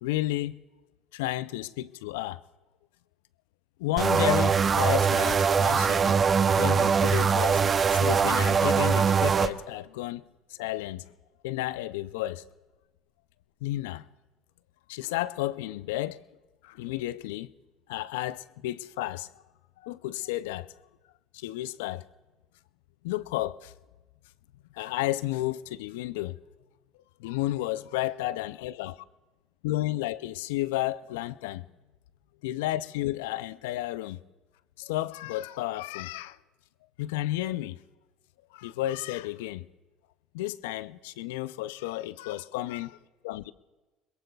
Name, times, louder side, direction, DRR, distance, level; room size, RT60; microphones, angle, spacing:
voice 1, 0.0-0.6 1.1-2.4 3.8-6.2 6.6-7.6 7.9-10.2 10.6-11.0 11.4-12.4 13.6-14.0 14.9-16.2 16.6-17.5 17.9-19.4 19.8-20.7 21.3-22.1 23.0-23.7 24.7-26.4 27.2-29.0 29.6-31.7 32.4-34.2 34.8-36.4 37.0-37.8 38.5-39.7 40.3-43.0 43.2-43.5, left 16 dB, 80° left, 0.4 m, -32 dB
sound 1, 4.0-9.5, right 6 dB, 35° right, 0.7 m, -22 dB
26.0 x 21.5 x 2.3 m
hypercardioid pair, 70°, 0 cm